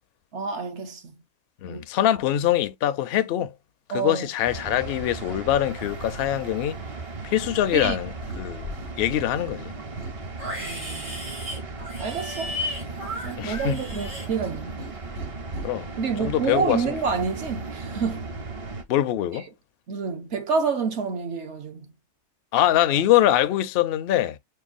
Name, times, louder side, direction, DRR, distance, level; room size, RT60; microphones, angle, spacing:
voice 1, 0.3-1.1 1.6-1.8 3.9-4.3 7.7-8.0 10.6-11.3 12.0-12.5 13.2-14.8 16.0-18.3 19.9-21.9, right 5 dB, 65° right, 1.1 m, -28 dB
voice 2, 1.6-3.5 3.9-6.8 7.2-9.7 13.4-13.8 15.6-15.9 16.2-16.9 18.9-19.5 22.5-24.4, left 12 dB, 65° left, 0.6 m, -23 dB
sound 1, 4.4-18.8, right 3 dB, 40° right, 0.5 m, -36 dB
Livestock farm animals working animals, 7.3-8.0 8.2-8.9 9.3-14.9 15.2-15.7, equal, 90° right, 3.4 m, -35 dB
6.5 x 2.3 x 2.5 m
omnidirectional pair, 1.3 m